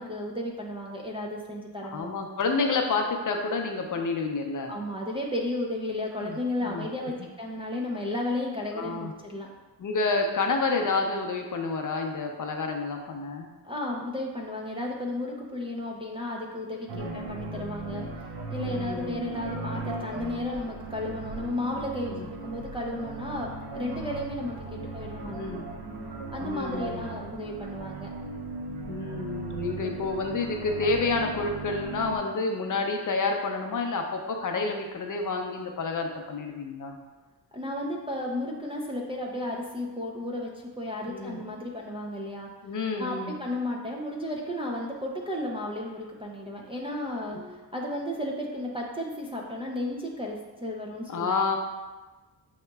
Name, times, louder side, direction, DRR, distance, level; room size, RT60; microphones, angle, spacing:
voice 1, 0.0-2.1 4.7-9.5 13.6-18.1 18.5-25.6 26.3-28.1 37.5-42.5 43.0-51.6, left 1 dB, 15° right, -3 dB, 0.3 m, -33 dB
voice 2, 1.8-4.7 6.2-7.1 8.7-9.1 9.8-13.5 16.9-17.1 18.6-19.1 22.1-22.3 25.2-25.7 26.4-27.0 28.9-37.0 41.1-41.4 42.6-43.4 47.3-47.5 51.1-51.6, left 3 dB, 50° left, 3 dB, 0.5 m, -29 dB
sound 1, 16.9-32.2, right 2 dB, 75° right, 0.6 m, -37 dB
6.3 x 2.8 x 2.2 m, 1.2 s
wide cardioid pair, 130°, 41 cm